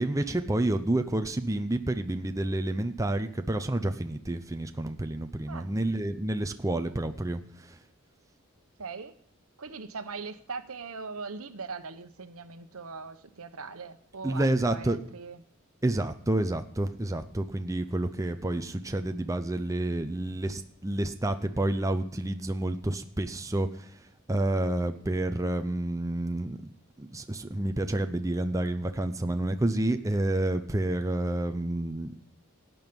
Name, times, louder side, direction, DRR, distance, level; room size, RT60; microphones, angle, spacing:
voice 1, 0.0-7.8 14.2-15.0 15.8-23.9 24.3-26.6 27.0-32.1, right 1 dB, 15° right, 7 dB, 0.6 m, -29 dB
voice 2, 8.8-9.1 9.6-15.4, right 4 dB, 70° right, 10 dB, 1.1 m, -40 dB
17.5 x 9.3 x 5.3 m, 0.66 s
head